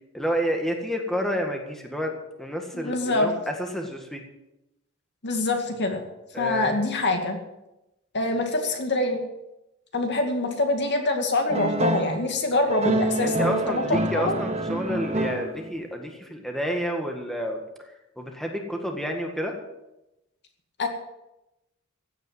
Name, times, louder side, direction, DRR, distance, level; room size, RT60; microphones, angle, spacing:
voice 1, 0.1-4.2 6.3-6.8 13.2-17.6 18.2-19.6, equal, ahead, 2 dB, 1.8 m, -29 dB
voice 2, 2.7-3.3 5.2-6.0 6.4-7.4 8.1-9.2 9.9-14.3 20.8-20.9, left 2 dB, 55° left, 4 dB, 2.3 m, -25 dB
sound 1, 11.5-12.2 12.7-15.8, right 2 dB, 30° right, 1.3 m, -27 dB
16.0 x 9.2 x 7.6 m, 0.93 s
head